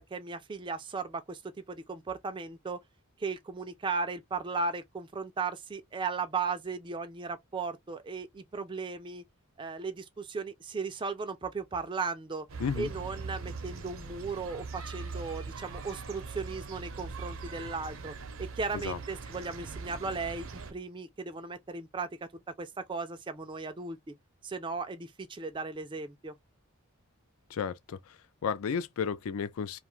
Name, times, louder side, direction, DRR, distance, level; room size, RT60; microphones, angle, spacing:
voice 1, 0.0-1.4 1.7-2.8 3.2-9.2 9.6-12.5 12.8-18.1 18.4-22.1 22.6-24.1 24.4-26.3, right 4 dB, 20° right, 0.3 m, -36 dB
sound 1, 12.5-20.7, right 4 dB, 65° right, 0.6 m, -41 dB
voice 2, 12.6-12.9 18.8-19.0 27.5-29.8, left 6 dB, 75° left, 0.4 m, -33 dB
2.4 x 2.3 x 3.0 m
head